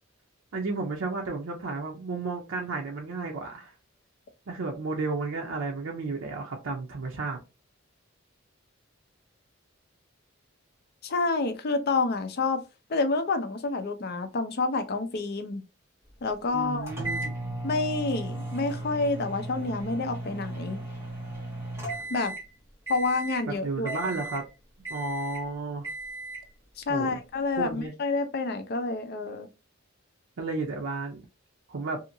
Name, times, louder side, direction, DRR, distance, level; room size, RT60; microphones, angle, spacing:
voice 1, 0.5-3.7 4.5-7.4 16.5-17.3 23.5-24.4 24.9-25.9 26.9-27.2 27.6-27.9 30.4-31.2 31.7-32.0, right 3 dB, 90° right, 0.5 m, -32 dB
voice 2, 11.0-12.6 12.9-15.6 16.2-16.9 17.6-20.8 22.1-22.3 22.9-24.1 26.9-29.5, left 3 dB, 50° left, 0.5 m, -28 dB
sound 1, 16.9-22.5 22.9-23.4 23.9-24.5 24.8-25.5 25.8-26.5, right 2 dB, 15° right, 1.1 m, -36 dB
2.8 x 2.5 x 2.6 m
head